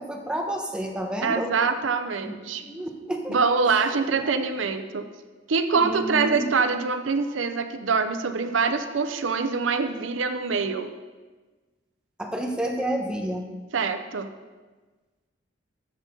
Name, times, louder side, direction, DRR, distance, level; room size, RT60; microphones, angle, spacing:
voice 1, 0.0-1.5 2.2-3.4 4.1-4.4 5.8-6.5 12.2-13.5, right 1 dB, 5° right, 1 dB, 1.1 m, -30 dB
voice 2, 1.2-2.6 3.3-5.0 5.5-10.9 13.7-14.3, right 5 dB, 85° right, 9 dB, 0.6 m, -24 dB
13.5 x 6.7 x 3.8 m, 1.3 s
head